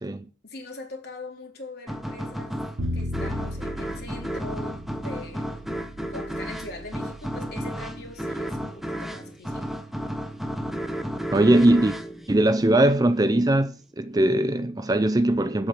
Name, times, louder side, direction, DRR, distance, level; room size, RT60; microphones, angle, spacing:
voice 1, 0.4-2.6 2.9-5.6 6.1-9.7, left 2 dB, 55° left, 3.9 m, -42 dB
sound 1, 1.9-13.1, equal, ahead, 1.0 m, -33 dB
Bowed string instrument, 2.8-9.0, left 1 dB, 85° right, 1.2 m, -37 dB
voice 2, 11.3-12.0 12.3-15.7, right 1 dB, 20° right, 0.5 m, -20 dB
8.4 x 7.7 x 8.7 m
head